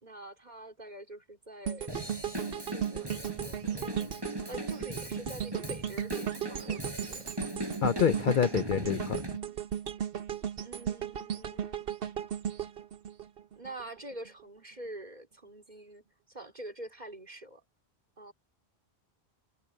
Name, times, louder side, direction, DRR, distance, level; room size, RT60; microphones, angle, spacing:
voice 1, 0.0-2.0 2.7-4.1 4.5-7.2 8.1-8.9 10.6-11.9 13.5-16.0 16.3-17.6 18.2-18.3, right 1 dB, 40° right, 3.4 m, -46 dB
sound 1, 1.7-13.8 14.3-14.4, right 9 dB, 60° right, 1.1 m, -36 dB
Drum kit / Drum, 1.9-9.4, right 1 dB, 20° right, 5.4 m, -39 dB
voice 2, 7.8-9.2, left 8 dB, 55° left, 0.7 m, -27 dB
omnidirectional pair, 1.1 m